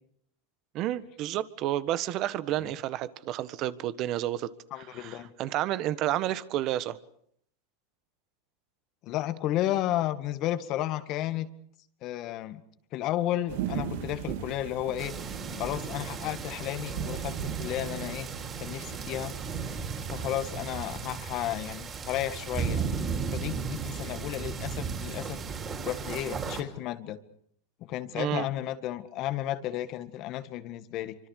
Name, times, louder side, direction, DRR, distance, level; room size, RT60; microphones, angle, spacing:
voice 1, 0.7-4.5 4.8-7.0 28.1-28.5, right 13 dB, 45° right, 1.6 m, -30 dB
voice 2, 4.7-5.3 9.0-11.5 12.0-12.6 12.9-18.3 18.6-19.3 20.1-22.9 23.3-27.2 27.8-31.2, left 13 dB, 50° left, 1.9 m, -33 dB
sound 1, 13.5-21.2, right 9 dB, 70° right, 2.9 m, -39 dB
sound 2, 15.0-26.6, right 5 dB, 30° right, 5.3 m, -35 dB
26.5 x 25.0 x 6.6 m
supercardioid pair, 120°, 0 cm